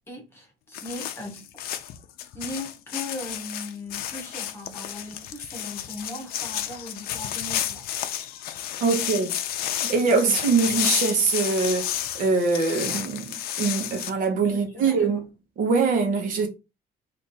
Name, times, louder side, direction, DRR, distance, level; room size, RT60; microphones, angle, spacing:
voice 1, 0.1-1.4 2.3-7.9 10.1-10.5 14.5-15.1, left 2 dB, 15° left, 1.2 m, -38 dB
sound 1, 0.7-14.1, left 11 dB, 80° left, 0.5 m, -31 dB
voice 2, 8.8-9.3 9.7-15.3 15.6-16.5, right 4 dB, 60° right, 1.0 m, -23 dB
3.3 x 2.6 x 4.0 m
cardioid pair, 170°, 15 cm